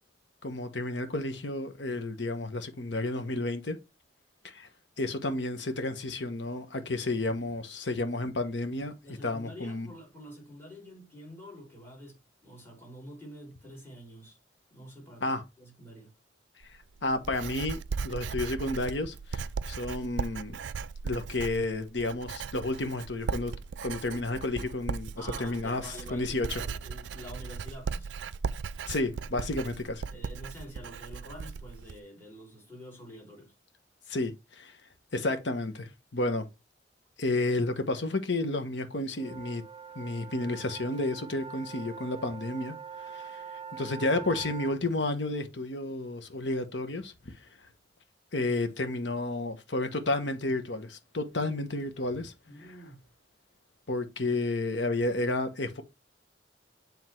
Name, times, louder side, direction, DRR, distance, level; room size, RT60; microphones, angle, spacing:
voice 1, 0.4-3.8 4.4-4.7 5.0-8.9 9.2-9.9 15.2-15.4 17.0-20.6 21.0-23.5 23.8-26.6 28.9-30.0 34.1-34.8 35.1-36.5 37.2-39.6 39.9-43.4 43.7-47.3 48.3-52.3 53.9-55.8, left 2 dB, 75° left, 1.2 m, -31 dB
voice 2, 9.0-14.4 14.7-16.1 25.2-28.1 30.1-33.5 52.4-53.0, equal, 15° left, 3.8 m, -47 dB
Writing, 16.6-32.0, right 5 dB, 80° right, 0.4 m, -37 dB
sound 1, 39.1-44.8, right 7 dB, 30° right, 0.6 m, -44 dB
7.7 x 3.7 x 4.5 m
head